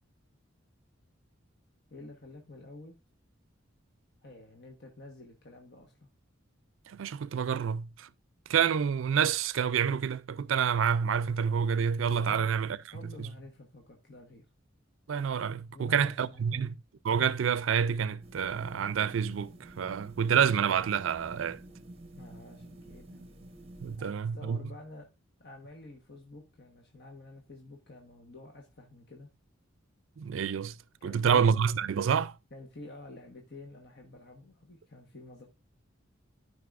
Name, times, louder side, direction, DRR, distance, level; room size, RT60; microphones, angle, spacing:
voice 1, 1.9-3.0 4.2-6.1 12.2-12.5 12.9-14.5 15.7-16.7 22.1-23.2 23.9-25.1 25.4-29.3 31.0-31.4 32.5-35.5, left 2 dB, 55° left, 1.2 m, -49 dB
voice 2, 6.9-8.1 8.5-12.8 13.2-13.3 15.1-16.7 17.0-21.6 23.8-24.7 30.2-30.8 31.0-32.3, right 7 dB, 75° right, 0.4 m, -28 dB
sound 1, 18.2-24.0, right 1 dB, 30° right, 1.1 m, -49 dB
12.5 x 5.3 x 2.5 m
head